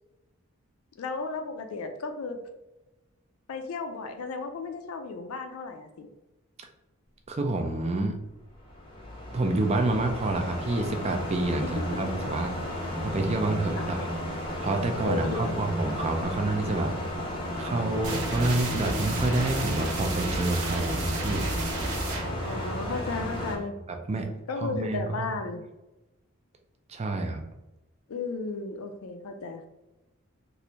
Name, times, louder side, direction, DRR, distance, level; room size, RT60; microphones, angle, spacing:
voice 1, 1.0-2.4 3.5-6.1 11.6-12.1 13.8-14.3 15.0-15.7 22.4-23.8 24.5-25.6 28.1-29.7, left 4 dB, 85° left, 6 dB, 0.4 m, -34 dB
voice 2, 7.3-8.2 9.3-12.6 13.0-14.0 14.6-16.9 17.6-21.5 23.9-24.3 24.6-25.2 26.9-27.4, right 2 dB, 30° right, 4 dB, 0.4 m, -28 dB
sound 1, 8.5-23.6, left 1 dB, 25° left, 0.6 m, -34 dB
sound 2, 12.9-21.7, equal, 55° right, 0.8 m, -39 dB
sound 3, 18.0-23.7, right 2 dB, 90° right, 0.7 m, -33 dB
3.1 x 2.5 x 2.8 m, 1.0 s
head